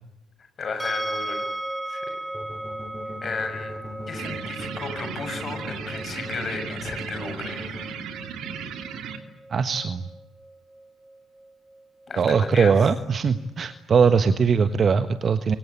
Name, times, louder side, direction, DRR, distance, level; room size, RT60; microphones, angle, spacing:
voice 1, 0.6-2.2 3.2-3.8 4.1-8.1 12.1-12.9, left 4 dB, 40° left, 8 dB, 7.1 m, -34 dB
sound 1, 0.8-13.8, right 1 dB, 10° right, 2.8 m, -38 dB
sound 2, 2.3-7.8, left 1 dB, 5° left, 7.1 m, -38 dB
sound 3, 4.2-9.2, right 7 dB, 60° right, 3.0 m, -36 dB
voice 2, 9.5-10.0 12.2-15.6, right 6 dB, 45° right, 11 dB, 1.4 m, -20 dB
28.5 x 24.5 x 8.1 m, 0.86 s
figure-of-eight pair, 50°, 0 cm